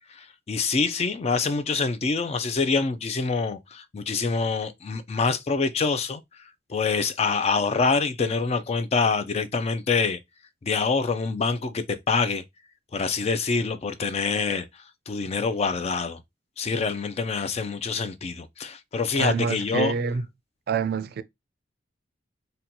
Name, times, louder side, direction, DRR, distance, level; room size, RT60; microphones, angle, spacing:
voice 1, 0.1-6.4 6.7-10.2 10.6-12.4 12.9-16.2 16.6-19.9, left 4 dB, 35° left, 0.4 m, -26 dB
voice 2, 19.2-20.2 20.7-21.2, right 5 dB, 60° right, 0.4 m, -26 dB
4.1 x 2.2 x 2.7 m
head